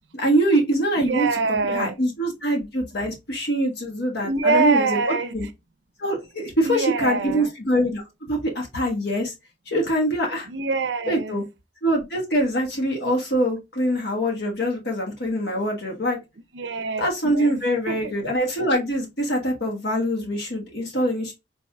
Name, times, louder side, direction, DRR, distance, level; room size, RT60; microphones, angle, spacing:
voice 1, 0.1-1.3 1.7-5.5 6.0-9.3 9.7-10.5 11.1-11.4 11.8-16.2 17.0-21.3, equal, 70° left, 1.3 m, -24 dB
voice 2, 1.0-1.9 4.2-5.3 6.6-7.5 10.5-11.4 16.5-17.5 17.9-18.1, right 4 dB, 85° right, 0.6 m, -24 dB
4.4 x 3.2 x 2.2 m
head